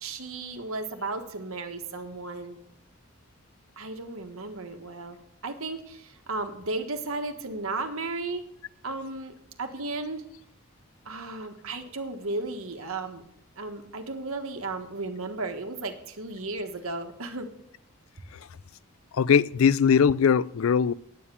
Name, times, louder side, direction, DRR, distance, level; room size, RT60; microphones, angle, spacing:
voice 1, 0.0-2.6 3.8-8.4 8.8-10.2 11.0-13.2 13.6-17.5, right 3 dB, 70° right, 1.5 m, -34 dB
voice 2, 19.1-20.9, left 7 dB, 65° left, 0.4 m, -20 dB
10.5 x 9.1 x 6.9 m
head